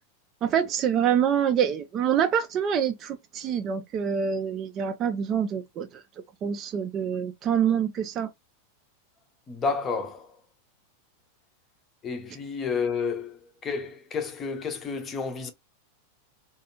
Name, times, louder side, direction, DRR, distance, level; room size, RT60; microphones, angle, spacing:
voice 1, 0.4-6.0 6.4-8.3, right 8 dB, 30° right, 0.4 m, -26 dB
voice 2, 9.5-10.3 12.0-15.5, left 5 dB, 25° left, 0.7 m, -30 dB
2.4 x 2.3 x 2.9 m
figure-of-eight pair, 90°, 0 cm